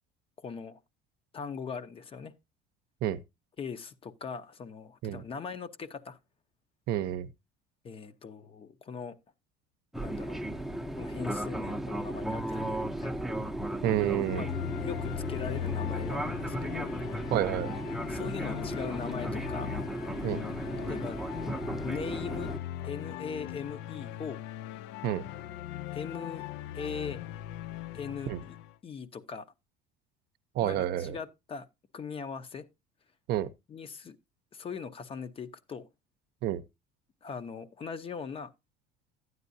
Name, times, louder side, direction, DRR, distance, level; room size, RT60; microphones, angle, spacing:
voice 1, 0.4-0.8 1.3-2.3 3.6-6.2 7.8-9.2 10.0-10.5 11.0-13.2 14.3-14.5 14.8-16.9 18.1-19.8 20.9-21.2 21.7-22.5 22.8-24.4 25.9-26.4 26.7-27.2 27.9-28.6 28.8-29.5 30.6-31.7 31.9-32.7 33.7-34.2 34.5-35.9 37.2-38.5, left 6 dB, 30° left, 0.7 m, -40 dB
voice 2, 6.9-7.3 13.8-14.5 17.3-17.8 20.2-20.4 25.0-25.2 28.3-28.4 30.5-31.2 33.3-33.5 36.4-36.6, right 12 dB, 55° right, 0.7 m, -29 dB
Fixed-wing aircraft airplane, 9.9-22.6, right 1 dB, ahead, 0.7 m, -35 dB
sound 1, 14.2-28.7, left 12 dB, 70° left, 0.5 m, -39 dB
12.0 x 9.5 x 2.7 m
cardioid pair, 130°, 19 cm